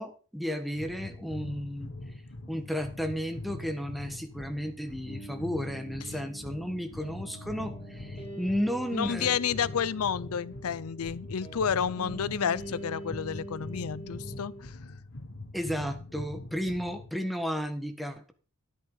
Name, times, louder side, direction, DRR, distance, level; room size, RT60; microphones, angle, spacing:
voice 1, 0.0-1.9 2.5-9.4 15.5-18.3, equal, ahead, 1.3 m, -33 dB
sound 1, 0.8-17.2, left 2 dB, 60° left, 1.4 m, -43 dB
sound 2, 5.1-14.6, right 1 dB, 25° left, 6.9 m, -45 dB
voice 2, 8.9-14.8, left 7 dB, 80° left, 0.5 m, -30 dB
11.5 x 10.0 x 3.9 m
head